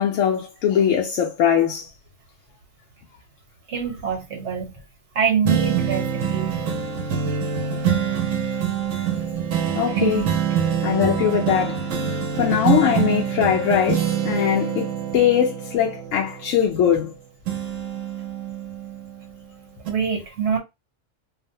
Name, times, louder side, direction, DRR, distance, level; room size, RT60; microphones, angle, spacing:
voice 1, 0.0-1.9 9.7-10.3 10.8-11.8 12.4-17.1, left 9 dB, 90° left, 0.9 m, -21 dB
voice 2, 3.7-4.8 5.1-6.5 10.0-10.2 19.9-20.6, right 6 dB, 70° right, 1.2 m, -24 dB
sound 1, 5.4-17.1 17.5-19.4 19.9-20.0, right 8 dB, 90° right, 1.0 m, -25 dB
2.6 x 2.1 x 2.6 m
omnidirectional pair, 1.3 m